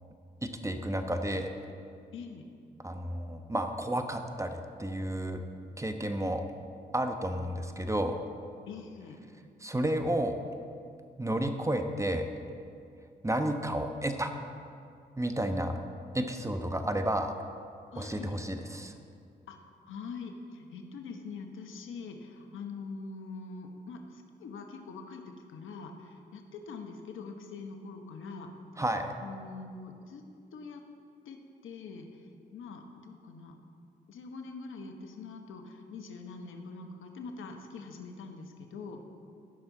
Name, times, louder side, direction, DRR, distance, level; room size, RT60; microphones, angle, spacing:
voice 1, 0.4-1.5 2.8-5.4 5.8-6.4 6.9-8.2 9.6-10.4 11.2-12.3 13.2-14.3 15.2-15.7 16.1-17.3 18.0-18.9 28.8-29.1, right 1 dB, 15° right, 6 dB, 1.0 m, -31 dB
voice 2, 2.1-2.4 8.7-9.2 17.9-18.4 19.5-19.6 19.9-28.5 29.2-30.2 30.5-30.8 31.3-31.4 31.6-32.1 32.5-33.6 34.1-39.0, left 4 dB, 70° left, 4 dB, 1.0 m, -43 dB
15.5 x 6.1 x 3.9 m, 2.3 s
hypercardioid pair, 40°, 21 cm